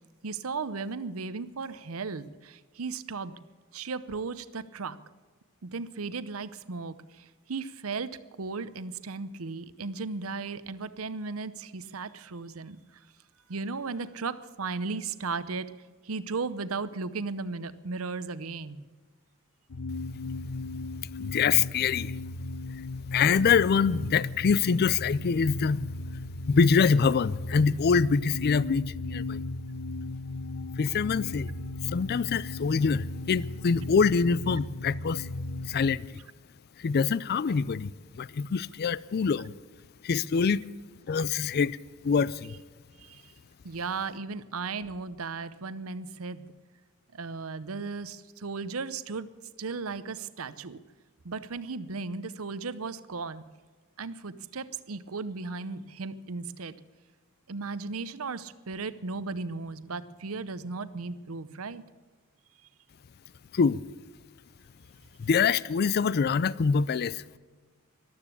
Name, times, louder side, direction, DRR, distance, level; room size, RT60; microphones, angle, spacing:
voice 1, 0.2-3.4 3.7-5.0 5.6-13.0 13.5-15.7 16.0-18.8 43.0-43.3 43.6-46.5 47.1-49.3 49.6-50.8 51.2-53.4 54.0-56.7 57.5-61.8, right 4 dB, 75° right, 0.8 m, -36 dB
sound 1, 19.7-35.9, left 2 dB, 80° left, 0.7 m, -36 dB
voice 2, 21.2-22.1 23.1-25.8 26.5-29.4 30.8-31.5 31.8-35.3 35.7-36.1 36.8-37.9 38.2-39.5 40.0-40.6 41.1-41.8 42.0-42.5 63.5-63.8 65.2-67.4, left 5 dB, 45° left, 0.4 m, -25 dB
14.0 x 12.5 x 8.4 m
head